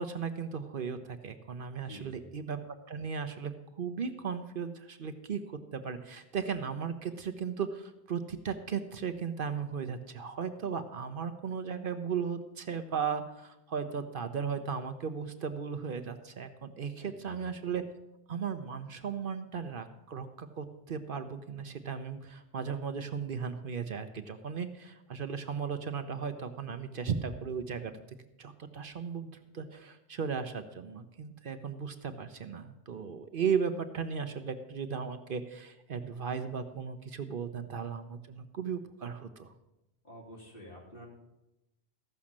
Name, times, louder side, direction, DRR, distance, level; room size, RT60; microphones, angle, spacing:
voice 1, 0.0-2.6 2.9-3.5 3.8-17.8 18.3-28.0 28.4-39.5, right 6 dB, 60° right, 9 dB, 0.9 m, -36 dB
voice 2, 1.8-2.3 17.0-17.5 40.0-41.1, equal, 60° left, -3 dB, 3.4 m, -49 dB
14.5 x 6.3 x 7.2 m, 0.92 s
omnidirectional pair, 1.1 m